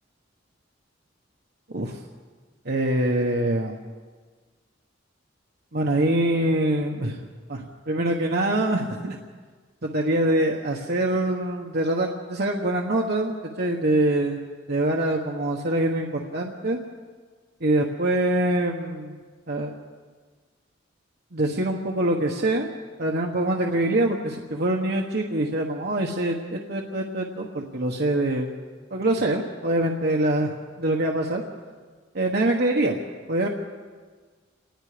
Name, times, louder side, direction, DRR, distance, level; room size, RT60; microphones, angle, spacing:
voice 1, 2.6-3.7 5.7-7.2 7.5-9.2 9.8-13.3 13.6-16.8 17.6-19.2 19.5-19.7 21.3-22.7 23.0-28.5 28.9-30.5 30.8-31.4 32.1-33.0 33.3-33.5, right 1 dB, 55° right, 0 dB, 1.3 m, -24 dB
27.0 x 20.0 x 5.1 m, 1.5 s
head